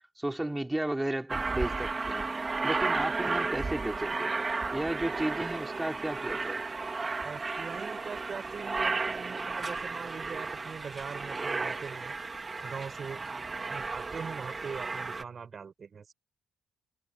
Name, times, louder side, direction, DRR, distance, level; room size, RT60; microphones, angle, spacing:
voice 1, 0.2-2.3 2.6-4.3 4.7-6.6, right 1 dB, 10° right, 5.2 m, -33 dB
Aircraft, 1.3-15.2, right 4 dB, 30° right, 2.4 m, -33 dB
voice 2, 7.2-12.1 12.6-13.3 13.7-16.1, right 6 dB, 45° right, 6.5 m, -42 dB
cardioid pair, 75°, 0 cm